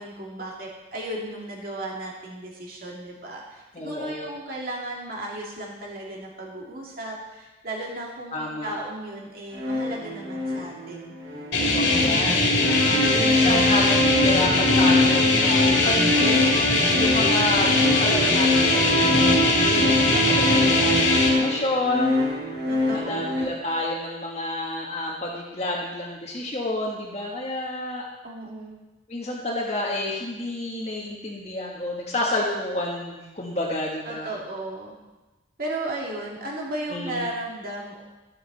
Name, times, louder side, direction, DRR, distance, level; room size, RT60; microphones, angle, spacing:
voice 1, 0.0-11.2 20.4-21.1 22.7-23.3 28.2-28.7 34.0-34.9 35.6-38.0, right 1 dB, 50° right, -3 dB, 2.7 m, -35 dB
voice 2, 3.7-4.3 8.3-8.7 11.6-16.4 17.0-22.1 22.9-28.1 29.1-34.3 36.9-37.3, left 1 dB, 35° left, -2 dB, 1.5 m, -29 dB
sound 1, 9.5-23.4, left 1 dB, 75° right, 4.2 m, -24 dB
sound 2, 11.5-21.3, left 2 dB, 70° left, 2.5 m, -21 dB
12.0 x 12.0 x 4.1 m, 1.1 s
head